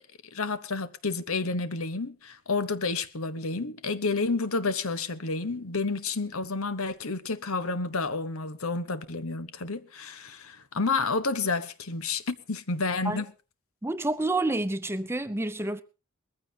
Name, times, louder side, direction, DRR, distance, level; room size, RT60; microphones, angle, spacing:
voice 1, 0.3-13.3, left 3 dB, 90° left, 1.2 m, -30 dB
voice 2, 13.8-15.8, right 2 dB, 10° right, 0.7 m, -28 dB
20.5 x 15.0 x 2.8 m
head